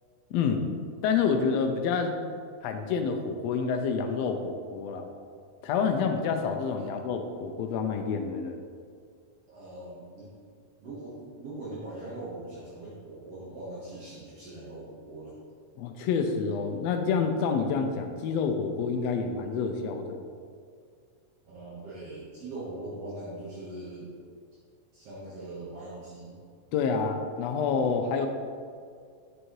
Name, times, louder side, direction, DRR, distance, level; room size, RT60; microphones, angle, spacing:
voice 1, 0.3-0.7 1.0-2.2 2.6-5.1 5.6-8.6 15.8-20.2 26.7-28.3, left 5 dB, 80° left, 5 dB, 1.5 m, -28 dB
voice 2, 9.5-10.3 10.8-15.4 21.5-24.1 24.9-26.3, right 2 dB, 60° right, -8 dB, 2.2 m, -41 dB
8.0 x 6.4 x 3.1 m, 2.1 s
omnidirectional pair, 3.4 m